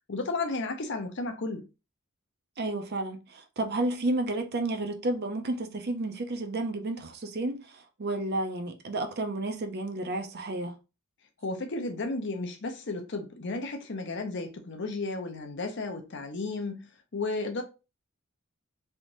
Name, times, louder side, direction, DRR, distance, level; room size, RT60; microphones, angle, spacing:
voice 1, 0.1-1.6 11.4-16.9 17.1-17.6, left 3 dB, 55° left, 0.7 m, -33 dB
voice 2, 2.6-10.8, right 2 dB, 45° right, 0.5 m, -31 dB
3.4 x 2.9 x 2.6 m
head